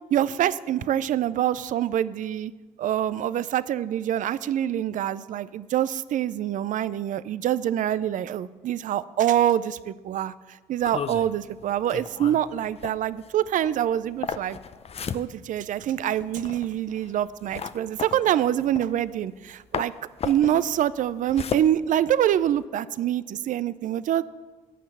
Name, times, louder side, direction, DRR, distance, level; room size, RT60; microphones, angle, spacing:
voice 1, 0.1-2.5 2.8-10.3 10.7-14.6 15.1-19.9 20.2-24.2, right 11 dB, 60° right, 17 dB, 0.4 m, -25 dB
sound 1, 10.8-19.5 19.7-22.6, left 6 dB, 45° left, 0.6 m, -35 dB
9.3 x 5.8 x 8.4 m, 1.3 s
supercardioid pair, 55°, 15 cm